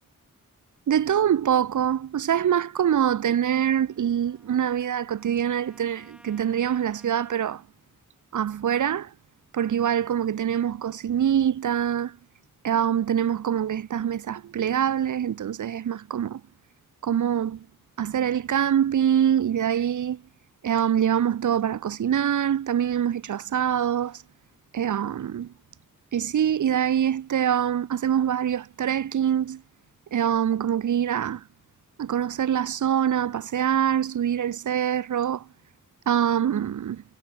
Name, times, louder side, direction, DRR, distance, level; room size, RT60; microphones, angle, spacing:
voice 1, 0.9-7.6 8.3-9.1 9.5-12.2 12.6-16.4 17.0-17.6 18.0-20.2 20.6-24.2 24.7-25.5 26.1-29.6 30.1-31.4 32.0-35.4 36.1-37.0, right 9 dB, 60° right, 0.6 m, -24 dB
Trumpet, 2.9-7.4, equal, 5° right, 4.6 m, -57 dB
wide cardioid pair, 65°, 35 cm